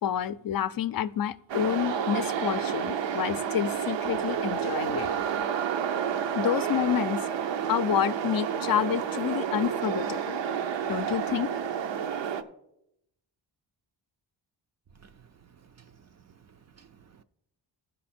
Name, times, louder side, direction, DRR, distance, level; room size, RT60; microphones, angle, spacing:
voice 1, 0.0-5.1 6.3-7.3 7.7-10.4 10.9-11.5, left 10 dB, 55° left, 0.5 m, -28 dB
sound 1, 1.5-12.4, right 8 dB, 80° right, 0.7 m, -30 dB
voice 2, 15.0-17.2, right 7 dB, 40° right, 0.4 m, -57 dB
15.5 x 5.2 x 4.3 m
cardioid pair, 95°, 44 cm